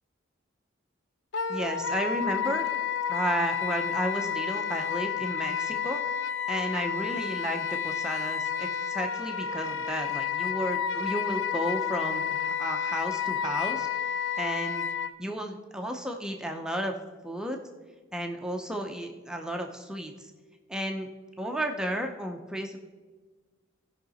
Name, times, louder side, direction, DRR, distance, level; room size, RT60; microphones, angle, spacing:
Wind instrument woodwind instrument, 1.3-15.1, left 7 dB, 65° left, 0.5 m, -30 dB
voice 1, 1.5-2.7 3.1-6.0 6.5-13.9 14.4-14.9 15.2-16.9 17.2-17.6 18.1-20.3 20.7-21.1 21.4-22.8, right 1 dB, 5° right, 3 dB, 0.6 m, -33 dB
16.0 x 5.7 x 4.0 m, 1.3 s
head